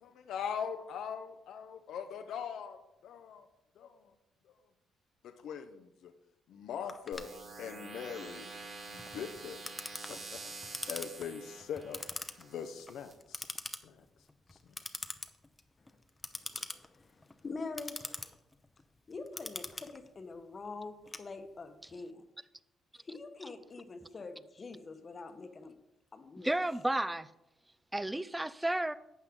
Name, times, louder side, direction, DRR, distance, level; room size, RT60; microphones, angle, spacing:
voice 1, 0.0-2.8 3.0-3.5 3.8-3.9 5.4-6.1 6.5-7.3 7.6-8.5 8.9-9.6 10.1-10.4 10.9-12.0 12.4-13.5 13.8-13.9, left 7 dB, 75° left, 7 dB, 0.7 m, -41 dB
Clock, 6.9-21.8, left 2 dB, 15° left, 0.8 m, -45 dB
sound 1, 7.1-13.1, right 3 dB, 65° right, 2.9 m, -47 dB
voice 2, 16.3-18.3 19.1-22.2 23.0-25.8 26.1-26.6, left 3 dB, 35° left, 7 dB, 1.0 m, -45 dB
voice 3, 26.4-27.3 27.9-28.9, right 1 dB, 10° right, 16 dB, 0.5 m, -32 dB
11.5 x 8.2 x 3.7 m, 0.89 s
cardioid pair, 90°, 0 cm